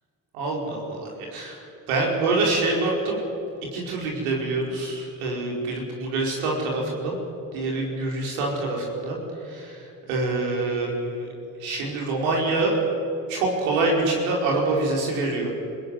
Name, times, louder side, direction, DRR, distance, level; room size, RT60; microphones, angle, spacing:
voice 1, 0.3-1.6 1.9-3.2 3.7-7.1 7.5-9.2 9.4-11.3 11.6-12.7 13.3-15.5, right 2 dB, 85° right, -1 dB, 4.8 m, -26 dB
25.5 x 16.0 x 9.7 m, 2.7 s
hypercardioid pair, 45°, 41 cm